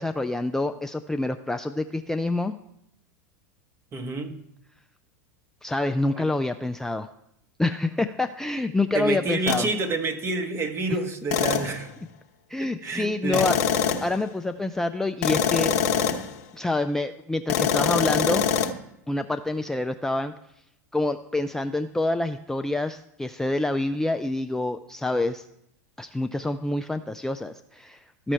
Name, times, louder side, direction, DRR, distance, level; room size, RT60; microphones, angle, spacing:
voice 1, 0.0-2.5 5.6-7.1 7.6-9.7 12.5-13.6 14.0-15.7 16.5-18.4 19.1-20.3 20.9-25.4 26.0-28.3, left 2 dB, 5° left, 7 dB, 0.3 m, -27 dB
voice 2, 3.9-4.3 6.1-6.3 8.9-11.9 12.6-13.5, right 3 dB, 30° right, 6 dB, 1.2 m, -28 dB
sound 1, 9.5-9.7 11.3-11.8 13.3-14.2 15.2-16.3 17.5-18.7, left 8 dB, 60° left, 0.9 m, -24 dB
13.5 x 5.0 x 4.4 m, 0.80 s
hypercardioid pair, 95°, 9 cm